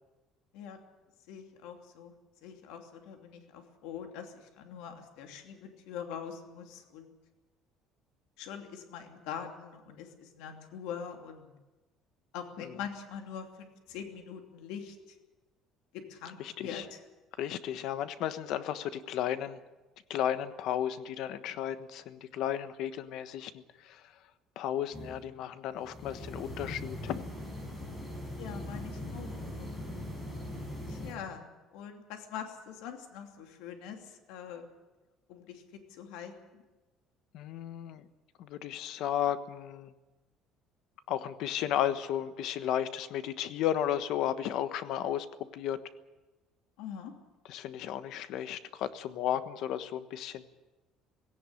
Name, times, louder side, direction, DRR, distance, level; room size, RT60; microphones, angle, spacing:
voice 1, 1.3-2.1 2.4-7.1 8.4-11.6 12.3-15.2 15.9-17.0 28.4-29.7 30.9-34.7 35.3-36.6 46.8-47.1, left 7 dB, 90° left, 4 dB, 2.8 m, -43 dB
voice 2, 17.4-19.6 20.1-24.1 24.6-27.3 37.3-38.1 38.4-39.9 41.1-45.3 45.5-45.8 47.5-50.5, left 10 dB, 60° left, 12 dB, 1.2 m, -34 dB
sound 1, 24.9-25.3 25.7-31.1, left 1 dB, 15° left, 5.3 m, -41 dB
17.5 x 17.0 x 9.9 m, 1.1 s
cardioid pair, 165°, 0 cm